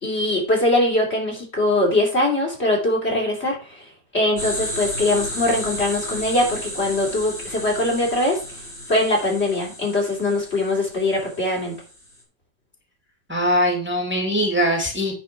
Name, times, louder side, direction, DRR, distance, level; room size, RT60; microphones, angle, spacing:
voice 1, 0.0-3.8 4.1-8.4 8.9-11.8, left 1 dB, 35° left, -1 dB, 3.4 m, -22 dB
sound 1, 4.4-12.1, equal, 80° left, 5.5 m, -33 dB
voice 2, 13.3-15.1, equal, 5° right, 0 dB, 2.6 m, -21 dB
10.0 x 4.9 x 6.0 m, 0.33 s
omnidirectional pair, 1.9 m